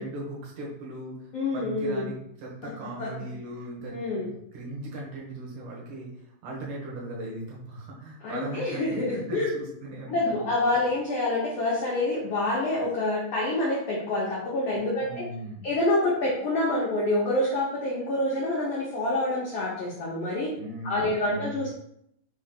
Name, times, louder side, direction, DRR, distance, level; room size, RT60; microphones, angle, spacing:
voice 1, 0.0-1.3 1.5-6.1 6.4-10.5 15.0-15.7 20.6-21.7, right 1 dB, 70° right, -4 dB, 2.2 m, -38 dB
voice 2, 1.3-2.1 2.6-2.7 3.0-3.1 3.9-4.3 8.2-9.5 10.1-15.2 15.6-20.5 20.8-21.7, left 2 dB, 85° left, -4 dB, 1.3 m, -27 dB
5.3 x 2.8 x 3.6 m, 0.73 s
omnidirectional pair, 4.1 m